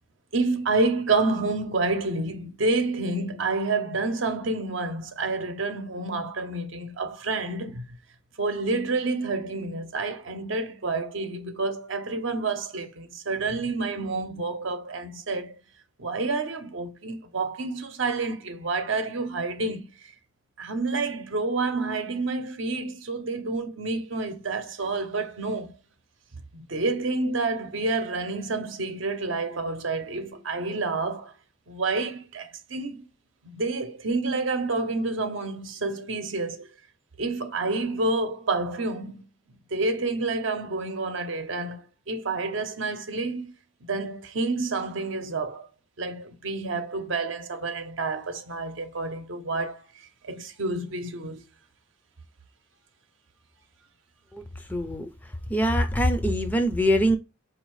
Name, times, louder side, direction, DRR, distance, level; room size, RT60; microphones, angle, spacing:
voice 1, 0.3-7.8 8.4-15.6 16.0-19.9 20.6-25.8 26.5-31.3 31.7-33.1 33.5-36.7 37.2-39.2 39.7-43.5 43.9-45.7 46.0-49.8 50.2-51.4, right 3 dB, 70° right, 0.8 m, -29 dB
voice 2, 54.7-55.1 55.5-57.2, equal, 10° left, 0.4 m, -23 dB
4.3 x 2.6 x 3.1 m
head